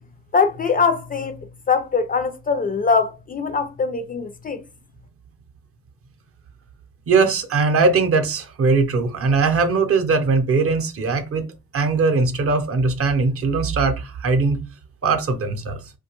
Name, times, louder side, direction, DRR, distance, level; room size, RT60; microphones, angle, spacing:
voice 1, 0.3-1.4 1.7-4.6, left 5 dB, 30° left, 0.3 m, -22 dB
voice 2, 7.1-11.5 11.7-14.6 15.0-15.8, right 4 dB, 50° right, 0.6 m, -20 dB
2.5 x 2.2 x 2.9 m
cardioid pair, 90°, 30 cm